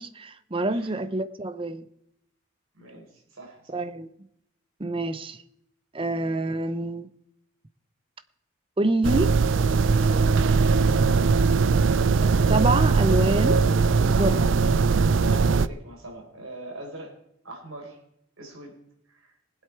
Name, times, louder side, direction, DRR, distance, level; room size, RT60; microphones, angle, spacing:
voice 1, 0.0-1.9 3.7-4.1 4.8-5.4 5.9-7.1 8.8-9.4 12.5-13.6 14.0-14.4, right 2 dB, 25° right, 0.7 m, -26 dB
voice 2, 0.7-1.0 2.8-3.1 3.3-3.8 15.2-17.1 17.4-18.0 18.4-18.7 19.1-19.3, right 2 dB, 90° right, 4.3 m, -42 dB
sound 1, 9.0-15.7, right 4 dB, 65° right, 0.4 m, -20 dB
20.0 x 8.2 x 4.6 m
head